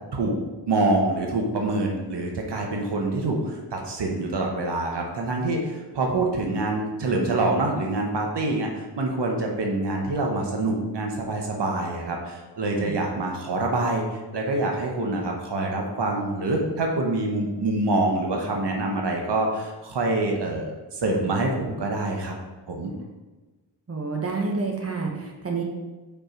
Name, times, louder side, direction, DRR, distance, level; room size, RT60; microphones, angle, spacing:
voice 1, 0.7-14.0 14.3-22.4 22.7-22.9, right 2 dB, 80° right, 1 dB, 1.0 m, -26 dB
voice 2, 23.9-25.6, right 4 dB, 35° right, 0 dB, 1.2 m, -28 dB
5.4 x 4.5 x 4.4 m, 1.2 s
wide cardioid pair, 100°, 41 cm